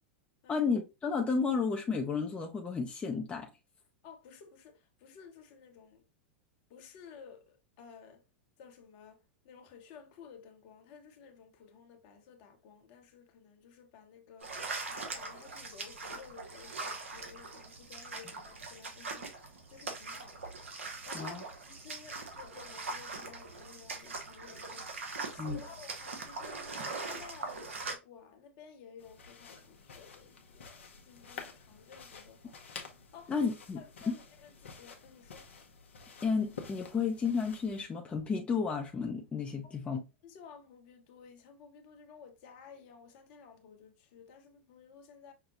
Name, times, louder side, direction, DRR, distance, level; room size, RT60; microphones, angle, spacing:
voice 1, 0.5-3.5 21.1-21.4 25.4-25.6 33.3-33.8 36.2-40.0, left 5 dB, 20° left, 0.7 m, -32 dB
voice 2, 4.0-6.0 6.7-8.2 8.6-20.5 21.1-24.8 25.3-32.6 33.1-33.3 33.8-35.5 39.6-39.7 40.2-45.3, left 6 dB, 50° left, 1.1 m, -54 dB
sound 1, 14.4-27.9, right 3 dB, 80° right, 1.2 m, -41 dB
sound 2, 29.0-37.8, left 5 dB, 75° left, 0.9 m, -50 dB
5.8 x 2.2 x 3.0 m
hypercardioid pair, 100°, 7 cm